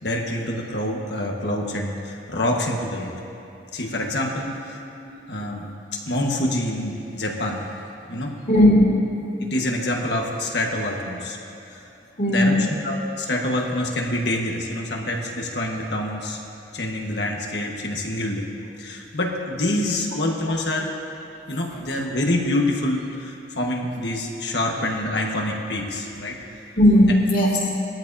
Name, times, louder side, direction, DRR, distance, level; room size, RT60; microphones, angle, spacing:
voice 1, 0.0-3.1 3.7-4.8 5.3-5.6 5.9-7.7 8.1-8.3 9.4-11.4 11.7-11.8 12.3-16.4 16.7-18.5 18.8-20.9 21.5-26.4, left 1 dB, 65° left, 0 dB, 1.5 m, -26 dB
voice 2, 8.5-9.0 12.2-12.7 23.6-23.7 26.8-27.6, left 1 dB, 45° left, -4 dB, 2.7 m, -17 dB
20.0 x 13.5 x 2.8 m, 2.7 s
head